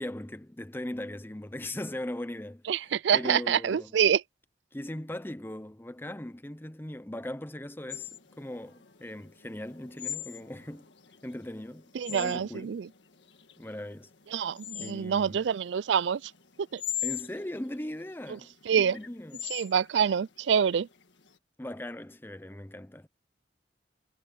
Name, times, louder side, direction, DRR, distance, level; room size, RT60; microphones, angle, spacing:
voice 1, 0.0-3.9 4.7-8.1 8.4-10.9 11.2-12.8 13.6-14.1 14.8-15.4 17.0-19.5 21.6-23.1, left 1 dB, 10° left, 0.7 m, -39 dB
voice 2, 2.7-4.2 11.9-12.9 14.3-16.3 16.7-16.8 18.7-19.0 19.5-20.9, right 7 dB, 80° right, 0.4 m, -26 dB
sound 1, 7.9-21.3, left 11 dB, 85° left, 1.7 m, -41 dB
head